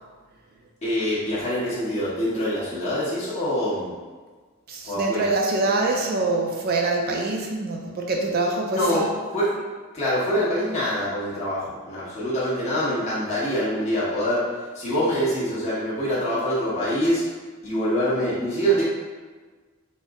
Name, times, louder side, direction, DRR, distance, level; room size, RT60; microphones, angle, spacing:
voice 1, 0.8-3.9 4.8-5.5 8.7-9.0 9.3-9.6 9.9-17.2 17.6-18.8, equal, 30° left, -9 dB, 1.2 m, -25 dB
voice 2, 4.7-9.1, right 2 dB, 45° right, 0 dB, 0.4 m, -24 dB
4.2 x 2.0 x 3.5 m, 1.4 s
head